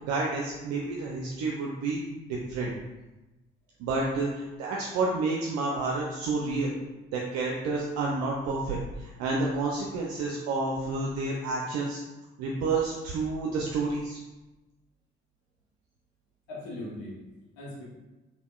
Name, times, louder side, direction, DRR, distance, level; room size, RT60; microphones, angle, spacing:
voice 1, 0.0-2.7 3.8-6.7 7.1-12.0 12.4-14.2, right 3 dB, 55° right, -2 dB, 0.5 m, -30 dB
voice 2, 16.5-17.8, left 1 dB, 70° left, -5 dB, 1.0 m, -40 dB
3.4 x 2.3 x 2.3 m, 1.1 s
figure-of-eight pair, 40°, 31 cm